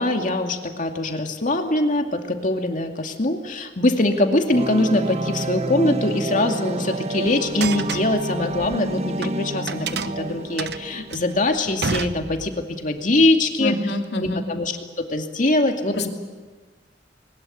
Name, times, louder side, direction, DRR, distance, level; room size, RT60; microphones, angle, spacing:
voice 1, 0.0-13.8 14.2-16.1, left 2 dB, 45° left, 4 dB, 2.5 m, -22 dB
sound 1, 4.5-11.4, right 2 dB, 40° right, 0.9 m, -29 dB
sound 2, 7.6-9.3 9.7-12.7, right 5 dB, 70° right, 0.9 m, -30 dB
voice 2, 13.6-14.4 16.0-16.1, left 1 dB, 70° left, 3 dB, 2.7 m, -26 dB
22.0 x 20.5 x 8.8 m, 1.4 s
head